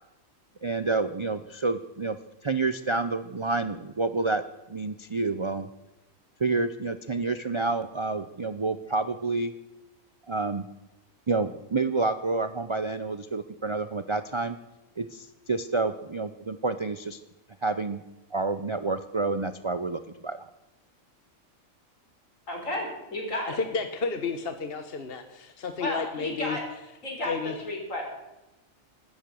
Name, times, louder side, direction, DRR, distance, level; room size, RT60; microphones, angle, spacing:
voice 1, 0.6-2.2 2.4-4.4 4.7-5.7 6.4-9.5 10.3-10.6 11.3-14.6 15.0-17.2 17.6-18.0 18.3-20.5, right 3 dB, 40° right, 11 dB, 0.4 m, -29 dB
voice 2, 22.5-23.6 25.8-26.6 27.0-27.3 27.6-28.0, left 1 dB, 70° left, 1 dB, 5.0 m, -32 dB
voice 3, 23.6-26.6 27.2-27.6, left 4 dB, 45° left, 7 dB, 1.3 m, -32 dB
16.5 x 13.0 x 6.4 m, 0.99 s
omnidirectional pair, 1.4 m